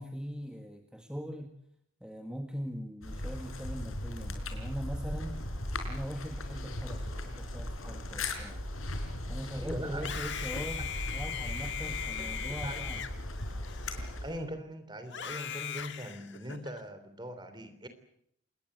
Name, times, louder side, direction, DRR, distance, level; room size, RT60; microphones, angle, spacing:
voice 1, 0.0-1.5 2.0-5.4 5.9-8.6 9.3-13.1, equal, 5° right, 4 dB, 1.7 m, -41 dB
sound 1, 3.0-14.4, left 1 dB, 75° left, 4.7 m, -38 dB
voice 2, 9.5-10.1 12.2-12.8 14.2-17.9, equal, 20° right, 9 dB, 3.3 m, -41 dB
Screaming, 9.9-14.4 15.1-16.8, left 8 dB, 55° left, 2.1 m, -39 dB
27.0 x 20.5 x 7.9 m, 0.72 s
head